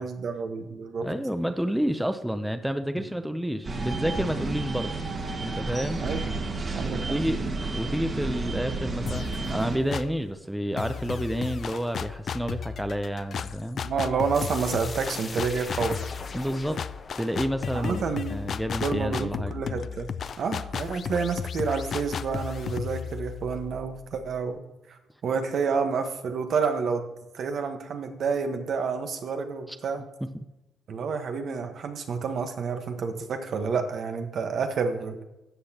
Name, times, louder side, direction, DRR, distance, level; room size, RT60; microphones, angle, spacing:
voice 1, 0.0-1.1 6.0-6.2 6.7-7.2 13.8-16.1 17.7-18.3 18.8-20.1 20.4-24.6 24.9-27.0 27.3-30.0 30.9-35.2, right 5 dB, 60° right, 6 dB, 1.2 m, -29 dB
voice 2, 1.0-5.0 5.4-6.0 6.8-7.4 7.7-13.8 16.3-16.8 17.2-18.0 18.3-19.5 29.7-29.8 30.3-30.4, equal, 5° right, 8 dB, 0.6 m, -29 dB
sound 1, 3.6-9.8, right 3 dB, 40° right, 1.7 m, -31 dB
sound 2, 9.1-10.3 10.8-24.5, left 7 dB, 55° left, 0.4 m, -34 dB
sound 3, 14.3-19.1, left 4 dB, 35° left, 1.0 m, -41 dB
13.0 x 7.9 x 2.9 m, 0.96 s
cardioid pair, 90°, 0 cm